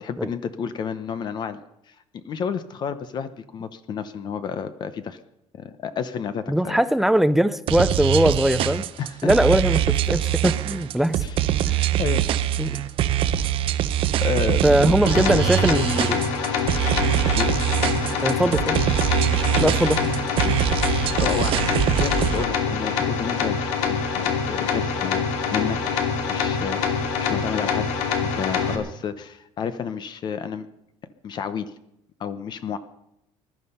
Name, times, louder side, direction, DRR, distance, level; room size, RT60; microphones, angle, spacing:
voice 1, 0.0-1.6 1.9-5.2 5.5-6.8 9.0-9.3 11.2-11.4 12.0-12.2 14.2-15.0 17.3-17.5 21.2-21.7 21.9-23.6 23.9-26.0 26.3-27.9 28.2-30.7 31.2-31.7 32.2-32.8, left 7 dB, 40° left, 0.8 m, -30 dB
voice 2, 6.5-8.8 9.2-11.2 11.6-11.8 12.6-12.8 14.6-16.2 18.2-18.8 19.6-20.0 20.4-20.6, right 1 dB, ahead, 0.5 m, -21 dB
sound 1, 7.7-22.4, right 11 dB, 50° right, 0.8 m, -23 dB
sound 2, 15.0-28.8, left 6 dB, 80° left, 2.5 m, -25 dB
20.5 x 12.0 x 5.5 m
cardioid pair, 160°, 12 cm